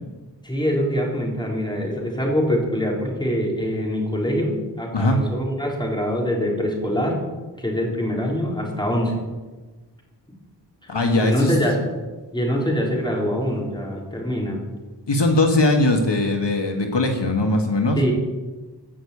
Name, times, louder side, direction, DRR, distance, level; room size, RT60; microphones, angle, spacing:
voice 1, 0.4-7.2 7.6-9.1 10.8-10.9 11.2-11.9 12.3-14.6 17.9-18.1, equal, 10° left, -2 dB, 4.1 m, -24 dB
voice 2, 10.9-11.5 15.1-18.0, left 2 dB, 75° left, 3 dB, 1.7 m, -20 dB
15.5 x 6.6 x 8.6 m, 1.3 s
wide cardioid pair, 70°, 42 cm